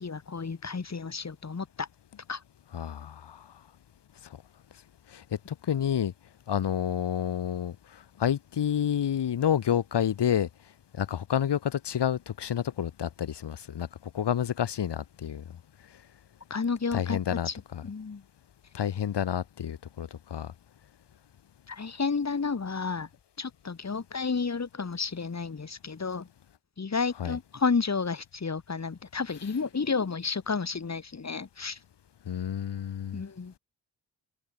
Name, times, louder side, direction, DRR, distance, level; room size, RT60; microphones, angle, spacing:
voice 1, 0.0-1.9 2.3-2.4 16.5-17.5 17.8-18.2 21.7-23.1 23.4-26.3 26.8-31.8 33.1-33.6, left 5 dB, 40° left, 4.7 m, -31 dB
voice 2, 2.7-3.5 5.1-6.1 6.5-10.5 10.9-13.9 14.1-15.4 16.9-17.8 18.7-20.5 27.2-27.4 32.3-33.2, left 9 dB, 75° left, 3.6 m, -29 dB
cardioid pair, 75°, 41 cm